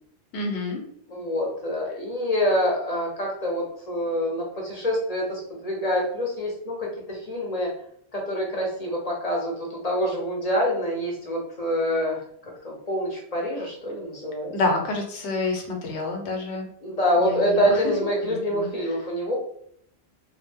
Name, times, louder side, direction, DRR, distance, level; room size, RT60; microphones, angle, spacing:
voice 1, 0.3-0.8 14.5-16.7 17.2-17.8 18.2-18.7, left 3 dB, 80° left, 2 dB, 1.0 m, -28 dB
voice 2, 1.1-7.7 8.1-12.2 12.6-14.5 16.8-19.3, equal, 45° left, -1 dB, 0.7 m, -26 dB
2.3 x 2.1 x 3.3 m, 0.67 s
omnidirectional pair, 1.1 m